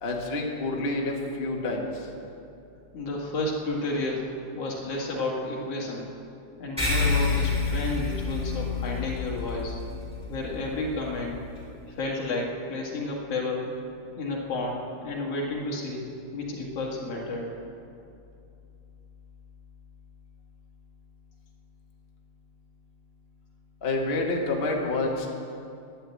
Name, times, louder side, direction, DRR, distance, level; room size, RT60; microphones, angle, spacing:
voice 1, 0.0-1.8 23.8-25.3, left 2 dB, 70° left, -1 dB, 0.5 m, -28 dB
voice 2, 2.9-6.1 6.6-9.8 10.3-11.3 11.9-13.7 14.2-16.0 16.3-17.6, left 2 dB, 50° left, -2 dB, 2.6 m, -31 dB
sound 1, 6.8-11.6, left 4 dB, ahead, 3.8 m, -29 dB
11.5 x 10.5 x 8.4 m, 2.6 s
omnidirectional pair, 4.1 m